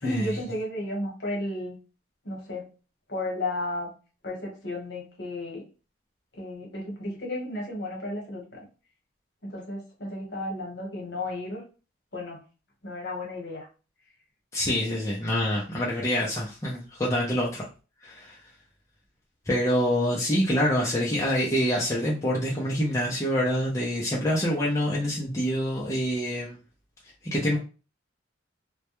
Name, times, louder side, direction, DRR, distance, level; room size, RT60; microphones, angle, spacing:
voice 1, 0.0-1.8 2.2-2.6 3.1-3.9 4.2-5.6 6.3-8.6 9.4-11.6 12.1-12.4 12.8-13.7, left 1 dB, 55° left, 1.0 m, -33 dB
voice 2, 14.5-17.7 18.0-18.4 19.5-26.6 27.2-27.6, equal, 15° left, 0.4 m, -26 dB
2.2 x 2.1 x 2.9 m
head